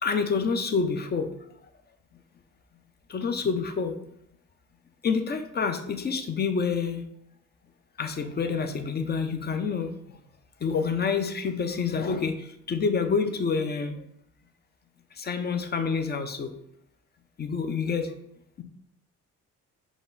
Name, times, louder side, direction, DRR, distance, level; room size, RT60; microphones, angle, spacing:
voice 1, 0.0-1.3 3.1-3.9 5.0-7.0 8.0-10.2 10.6-14.1 15.1-16.5 17.4-18.1, left 5 dB, 35° left, 7 dB, 0.6 m, -28 dB
5.3 x 2.4 x 4.0 m, 0.77 s
cardioid pair, 90°, 30 cm